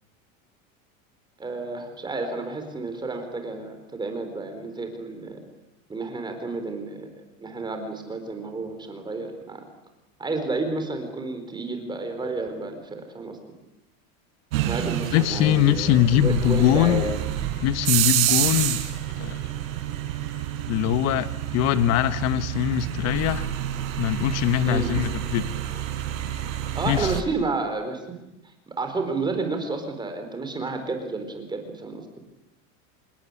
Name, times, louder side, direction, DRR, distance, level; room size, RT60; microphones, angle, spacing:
voice 1, 1.4-5.4 5.9-7.1 7.4-9.7 10.2-13.4 14.6-17.2 24.7-24.9 26.7-28.0 28.4-32.0, right 3 dB, 10° right, 6 dB, 4.3 m, -31 dB
sound 1, 14.5-27.2, right 12 dB, 85° right, 4.6 m, -28 dB
voice 2, 15.1-17.0 17.6-18.8 19.2-19.4 20.7-21.3 21.5-23.5 24.0-25.5 26.9-27.1, left 12 dB, 40° left, 13 dB, 1.4 m, -22 dB
27.0 x 21.0 x 9.9 m, 0.91 s
supercardioid pair, 165°, 39 cm